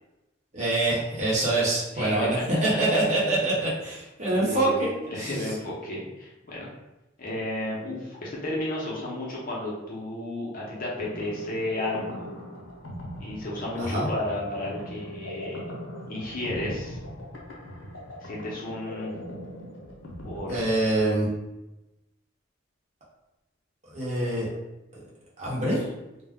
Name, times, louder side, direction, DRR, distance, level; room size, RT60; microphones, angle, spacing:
voice 1, 0.5-4.9 5.2-5.3 13.9-14.1 20.5-21.3 23.9-24.5 25.4-25.8, right 2 dB, 35° right, -7 dB, 0.9 m, -25 dB
voice 2, 1.9-2.3 2.9-3.0 4.3-6.7 7.2-12.3 13.2-15.6 16.1-17.0 18.2-19.1 20.2-20.6, left 1 dB, 45° left, -5 dB, 0.7 m, -33 dB
sound 1, 10.7-21.3, left 1 dB, 80° left, 0.7 m, -40 dB
2.3 x 2.0 x 3.5 m, 0.99 s
head